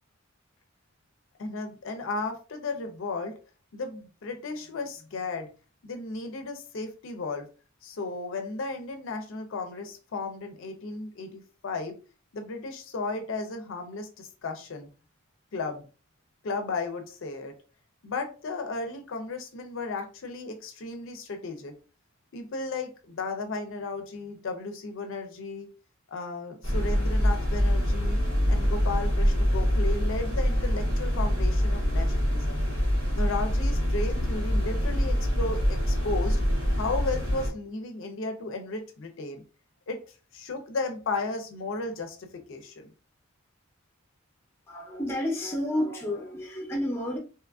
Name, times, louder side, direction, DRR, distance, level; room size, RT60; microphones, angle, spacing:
voice 1, 1.4-3.4 3.7-5.5 5.8-7.5 7.8-12.0 12.3-14.9 15.5-15.8 16.4-17.5 18.0-21.8 22.3-25.7 26.1-28.2 28.5-32.6 33.1-36.4 36.8-39.4 39.9-40.0 40.3-42.9, left 3 dB, 60° left, 0.5 m, -34 dB
sound 1, 26.6-37.5, equal, 85° right, 1.4 m, -25 dB
voice 2, 44.7-47.2, left 1 dB, 10° left, 0.6 m, -30 dB
2.8 x 2.4 x 2.3 m
head